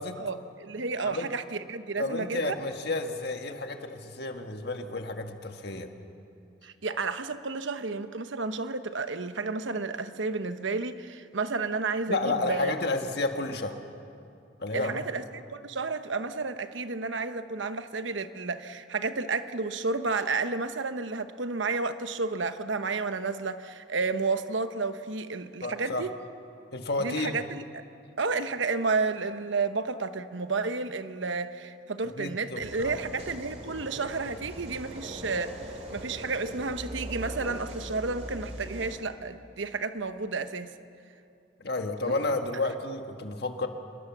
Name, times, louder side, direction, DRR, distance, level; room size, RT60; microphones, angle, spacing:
voice 1, 0.2-1.4 1.7-2.5 6.6-12.7 14.7-26.1 27.0-27.8 28.2-40.7 42.1-42.2, right 4 dB, 70° right, 10 dB, 1.0 m, -31 dB
voice 2, 2.0-5.9 12.1-13.8 14.6-15.0 25.6-26.1 26.7-27.3 32.2-33.0 41.6-43.7, left 2 dB, 55° left, 5 dB, 1.7 m, -31 dB
sound 1, 32.6-38.9, equal, 35° right, 3.3 m, -40 dB
26.0 x 21.0 x 7.3 m, 2.7 s
head